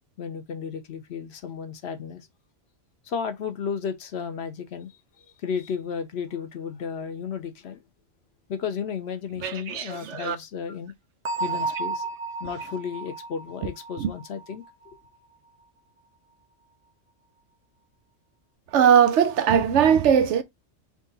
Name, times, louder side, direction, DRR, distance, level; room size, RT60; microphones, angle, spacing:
voice 1, 0.2-2.3 3.1-7.8 8.5-10.9 11.4-12.1 12.4-14.6, left 6 dB, 65° left, 0.9 m, -33 dB
voice 2, 9.4-10.4 14.0-14.1 18.7-20.4, right 8 dB, 70° right, 0.9 m, -20 dB
Bell, 11.2-14.9, right 3 dB, 45° right, 0.4 m, -33 dB
3.7 x 3.0 x 3.9 m
omnidirectional pair, 1.3 m